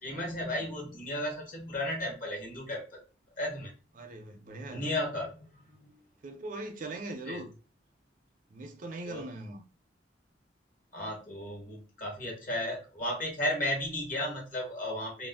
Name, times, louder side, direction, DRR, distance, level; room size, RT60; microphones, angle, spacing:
voice 1, 0.0-3.0 3.4-3.7 4.7-5.9 7.3-7.4 9.1-9.2 10.9-15.3, left 1 dB, 50° left, 1.1 m, -34 dB
voice 2, 3.9-4.8 6.2-7.5 8.5-9.6, right 2 dB, 50° right, 0.5 m, -40 dB
2.5 x 2.0 x 3.4 m
head